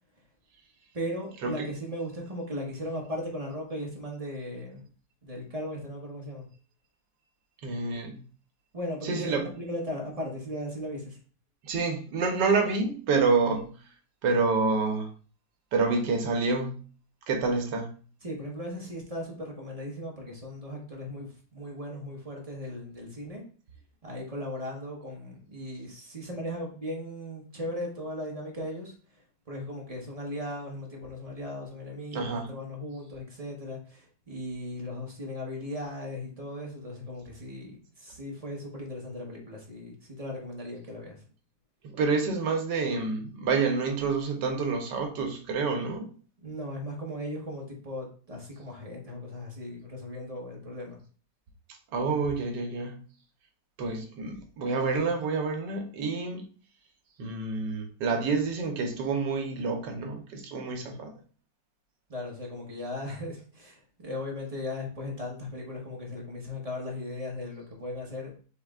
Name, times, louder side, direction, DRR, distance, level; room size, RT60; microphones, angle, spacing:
voice 1, 0.9-4.8 5.2-6.5 8.7-11.2 18.2-23.4 24.0-29.2 29.5-41.2 46.4-51.0 62.1-68.4, left 1 dB, 30° right, -1 dB, 0.8 m, -37 dB
voice 2, 7.6-8.2 9.0-9.4 11.6-13.7 14.2-15.1 15.7-16.7 17.3-17.9 32.1-32.5 41.8-46.1 51.9-53.0 53.8-56.5 57.2-61.2, right 4 dB, 75° right, 4 dB, 1.4 m, -28 dB
4.1 x 3.1 x 3.5 m, 0.41 s
omnidirectional pair, 1.9 m